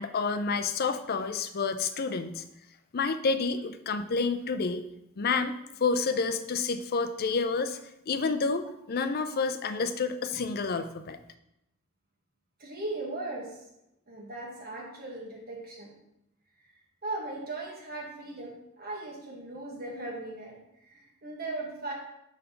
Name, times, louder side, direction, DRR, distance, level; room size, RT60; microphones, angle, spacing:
voice 1, 0.0-2.4 2.9-4.8 5.2-5.5 5.8-7.8 8.1-11.2, left 4 dB, 45° left, 10 dB, 0.4 m, -29 dB
voice 2, 12.6-13.6 14.1-15.9 17.0-20.6 20.9-21.9, right 2 dB, 45° right, -1 dB, 1.4 m, -38 dB
5.2 x 3.9 x 5.6 m, 0.84 s
head